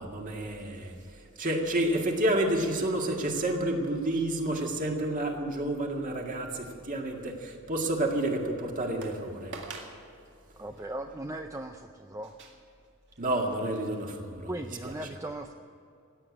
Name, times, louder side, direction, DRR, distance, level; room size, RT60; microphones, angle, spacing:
voice 1, 0.0-9.5 13.2-14.5 14.8-14.9, right 1 dB, 40° right, 1 dB, 2.0 m, -30 dB
sound 1, 7.0-7.5 8.1-8.2 9.0-9.2 9.5-10.0 10.7-10.9 12.2-14.2 14.6-14.7, right 3 dB, 55° right, 2.0 m, -47 dB
voice 2, 10.6-12.3 14.5-15.5, right 1 dB, 15° right, 5 dB, 0.5 m, -38 dB
15.5 x 9.1 x 9.8 m, 2.5 s
head